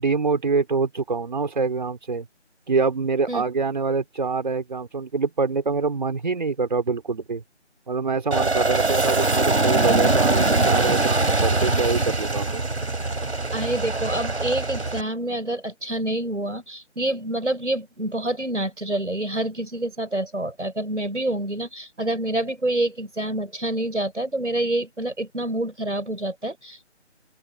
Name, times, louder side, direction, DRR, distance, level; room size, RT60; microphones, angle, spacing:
voice 1, 0.0-2.3 2.7-7.4 7.9-12.6, right 4 dB, 40° right, 3.6 m, -25 dB
Aircraft, 8.3-15.0, right 2 dB, 65° right, 3.9 m, -22 dB
voice 2, 13.5-26.9, right 1 dB, 80° right, 6.9 m, -27 dB
open air
figure-of-eight pair, 160°, 36 cm